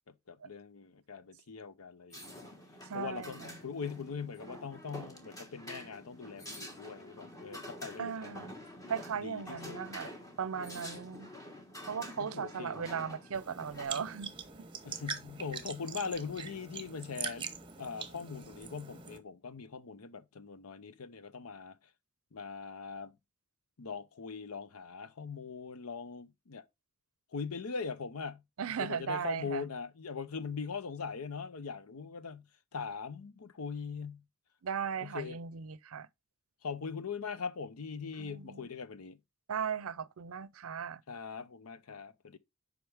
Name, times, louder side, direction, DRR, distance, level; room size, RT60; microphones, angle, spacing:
voice 1, 0.1-2.4 2.9-8.5 9.2-9.8 10.7-10.8 12.2-12.8 14.8-17.5 17.8-21.8 22.3-23.1 23.8-26.6 27.3-28.4 28.8-32.4 32.7-34.2 35.0-35.4 36.6-39.2 41.1-42.4, left 5 dB, 85° left, 0.7 m, -41 dB
sound 1, 2.1-13.9, equal, 15° left, 1.4 m, -48 dB
voice 2, 2.9-3.6 8.0-8.5 8.9-11.3 11.9-14.6 28.6-29.7 34.6-36.1 38.2-38.7 39.5-41.0, right 7 dB, 75° right, 0.5 m, -37 dB
sound 2, 13.3-19.2, right 6 dB, 25° right, 0.9 m, -43 dB
8.0 x 5.0 x 3.4 m
head